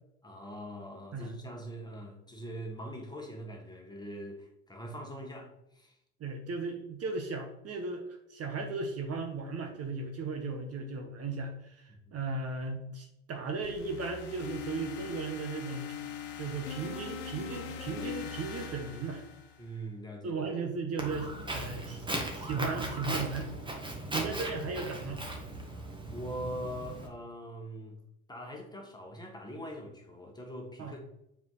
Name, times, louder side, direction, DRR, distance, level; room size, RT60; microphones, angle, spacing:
voice 1, 0.2-6.0 11.9-12.2 19.6-20.5 24.0-24.3 25.7-28.0 28.3-31.0, right 1 dB, 10° left, 1.8 m, -43 dB
voice 2, 6.2-15.9 16.4-19.2 20.2-22.0 22.3-23.5 24.1-25.2 30.8-30.9, right 4 dB, 40° right, 1.3 m, -36 dB
sound 1, 13.6-19.8, left 7 dB, 75° left, 1.2 m, -42 dB
Walk footsteps, 21.0-27.1, right 1 dB, 15° right, 1.7 m, -38 dB
6.9 x 5.0 x 4.0 m
hypercardioid pair, 80°, 38 cm